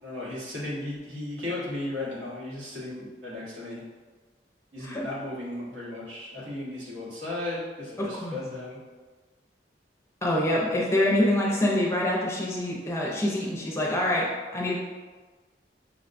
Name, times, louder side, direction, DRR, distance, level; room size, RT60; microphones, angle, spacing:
voice 1, 0.0-3.8 4.7-8.8, left 2 dB, 85° right, -7 dB, 1.4 m, -35 dB
voice 2, 8.0-8.4 10.2-14.3 14.5-14.8, left 1 dB, 15° left, -4 dB, 0.5 m, -25 dB
6.0 x 2.2 x 2.5 m, 1.4 s
head